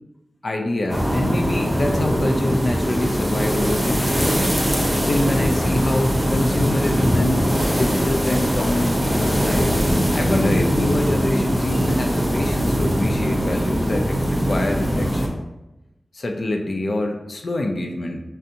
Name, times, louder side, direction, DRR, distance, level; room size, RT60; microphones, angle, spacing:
voice 1, 0.4-4.4 5.0-7.5 7.7-9.7 10.1-15.4 16.1-18.2, left 1 dB, 50° left, 3 dB, 0.4 m, -25 dB
sound 1, 0.9-15.3, equal, 10° left, 0.6 m, -21 dB
5.4 x 2.5 x 2.7 m, 0.99 s
wide cardioid pair, 110°, 0 cm